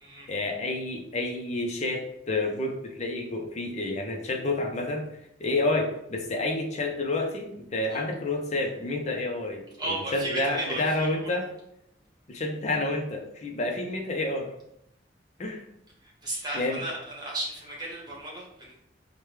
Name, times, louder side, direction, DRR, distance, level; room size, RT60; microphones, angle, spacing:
voice 1, 0.3-5.1 5.4-11.5 12.3-14.5 15.4-15.6 16.5-16.8, left 2 dB, 40° left, 2 dB, 0.6 m, -29 dB
voice 2, 9.8-11.3 16.0-18.7, right 1 dB, 25° right, -3 dB, 1.2 m, -35 dB
4.8 x 2.2 x 3.2 m, 0.77 s
head